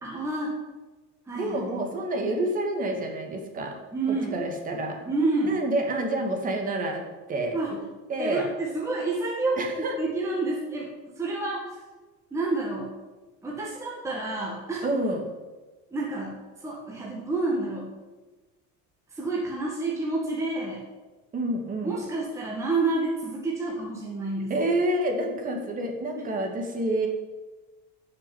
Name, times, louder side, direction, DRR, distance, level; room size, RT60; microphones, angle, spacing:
voice 1, 0.0-0.5 1.3-1.7 3.9-4.4 5.1-5.6 7.5-7.7 8.2-9.6 10.0-10.9 11.2-11.8 12.3-12.9 13.4-14.8 15.9-16.4 16.6-17.9 19.1-20.8 21.8-24.5, right 2 dB, 10° right, -3 dB, 1.7 m, -29 dB
voice 2, 1.3-3.8 4.1-5.0 5.4-7.0 7.3-7.8 8.1-8.5 9.6-9.9 14.8-15.3 21.3-22.0 24.5-27.1, right 1 dB, 25° right, 3 dB, 2.2 m, -28 dB
13.0 x 6.6 x 9.4 m, 1.2 s
cardioid pair, 175°, 32 cm